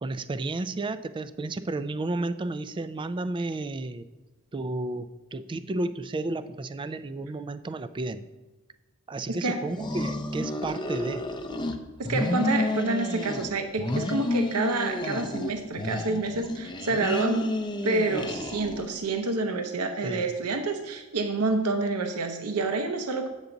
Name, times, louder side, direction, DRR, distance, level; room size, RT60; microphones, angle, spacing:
voice 1, 0.0-4.1 4.5-8.2 9.1-11.3 20.0-20.3, right 2 dB, 20° right, 13 dB, 0.3 m, -32 dB
voice 2, 9.3-9.6 12.0-23.3, right 3 dB, 85° right, 6 dB, 0.8 m, -28 dB
sound 1, 9.7-11.8 12.0-13.5 13.8-15.5 15.8-19.0, left 1 dB, 20° left, 0.6 m, -30 dB
8.1 x 7.0 x 3.9 m, 1.2 s
head